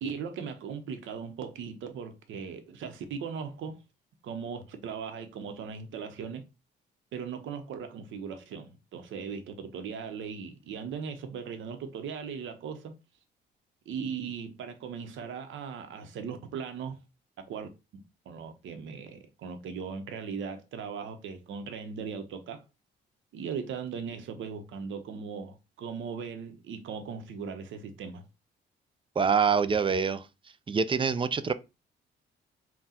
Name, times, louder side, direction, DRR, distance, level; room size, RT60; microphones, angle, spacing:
voice 1, 0.0-3.8 4.2-6.5 7.1-13.0 13.9-17.0 17.5-22.6 23.3-28.2, right 6 dB, 75° right, 0.8 m, -38 dB
voice 2, 29.2-30.3 30.7-31.5, right 6 dB, 25° right, 0.4 m, -25 dB
3.8 x 2.3 x 4.2 m
cardioid pair, 90°, 20 cm